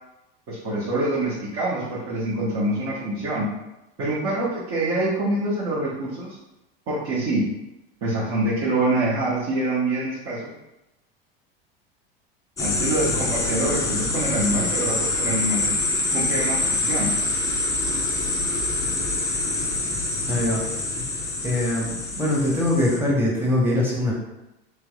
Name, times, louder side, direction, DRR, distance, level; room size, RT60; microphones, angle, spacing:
voice 1, 0.5-3.5 4.0-6.3 6.9-7.5 8.0-10.5 12.6-15.7 16.1-17.1, right 2 dB, 50° right, -7 dB, 1.0 m, -25 dB
sound 1, 12.6-23.0, left 2 dB, 10° left, 0.4 m, -25 dB
voice 2, 20.3-20.6 21.0-21.1 21.4-24.1, left 1 dB, 5° right, -4 dB, 1.0 m, -22 dB
3.3 x 3.1 x 2.3 m, 0.94 s
hypercardioid pair, 90°, 30 cm